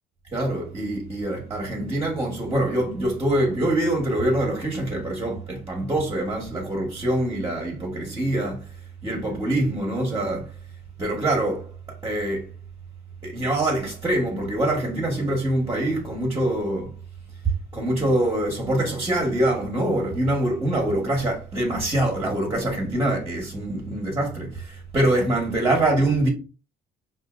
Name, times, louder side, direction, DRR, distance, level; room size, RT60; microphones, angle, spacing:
voice 1, 0.3-8.7 9.0-10.5 11.0-12.5 13.2-16.9 17.4-26.3, right 1 dB, 20° right, 1.3 m, -24 dB
4.9 x 2.7 x 2.5 m
cardioid pair, 110°, 17 cm